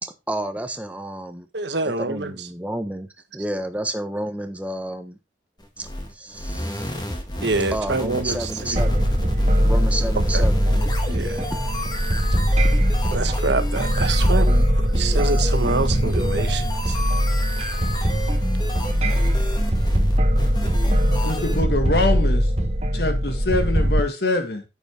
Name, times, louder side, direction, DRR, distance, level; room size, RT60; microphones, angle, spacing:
voice 1, 0.0-1.5 1.8-3.1 3.3-5.2 5.8-6.9 7.7-9.1 9.6-10.6, right 1 dB, 10° right, 1.0 m, -30 dB
voice 2, 1.5-2.3 7.4-8.8 10.3-10.4 11.1-11.4 13.1-14.5 15.0-17.0, right 3 dB, 70° right, 1.3 m, -26 dB
sound 1, 5.6-21.6, left 1 dB, 20° left, 1.9 m, -33 dB
sound 2, 8.8-24.0, equal, 35° right, 1.3 m, -21 dB
voice 3, 21.2-22.5 22.9-24.6, left 2 dB, 55° left, 1.7 m, -24 dB
9.8 x 8.0 x 3.5 m
head